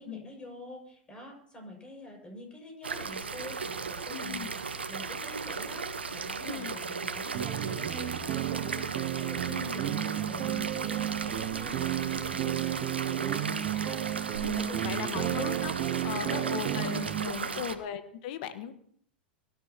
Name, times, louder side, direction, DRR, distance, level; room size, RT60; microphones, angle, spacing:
voice 1, 0.0-4.6 4.9-8.9 9.1-14.0 14.5-15.4 15.8-16.8 17.2-17.6, left 1 dB, 20° left, 2 dB, 6.4 m, -46 dB
sound 1, 2.8-17.8, right 5 dB, 90° right, 1.1 m, -36 dB
voice 2, 4.1-4.5 6.4-6.7 9.4-9.8 14.4-15.7 16.0-18.7, left 9 dB, 60° left, 9 dB, 1.5 m, -38 dB
sound 2, 7.3-17.3, right 14 dB, 45° right, 0.9 m, -33 dB
23.5 x 12.5 x 3.0 m, 0.63 s
hypercardioid pair, 100°, 6 cm